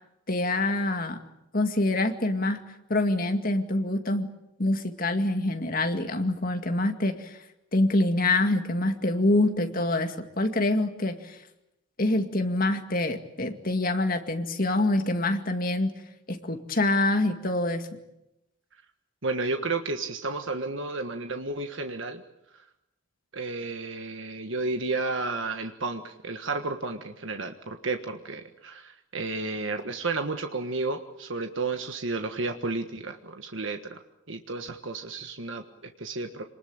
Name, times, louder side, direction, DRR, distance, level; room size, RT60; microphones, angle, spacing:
voice 1, 0.3-1.2 1.5-2.6 2.9-4.3 4.6-7.4 7.7-11.4 12.0-15.9 16.3-17.8, left 2 dB, 40° left, 6 dB, 2.2 m, -25 dB
voice 2, 19.2-22.2 23.3-34.0 34.3-36.4, right 3 dB, 65° right, 5 dB, 1.5 m, -32 dB
27.0 x 20.0 x 8.8 m, 0.89 s
head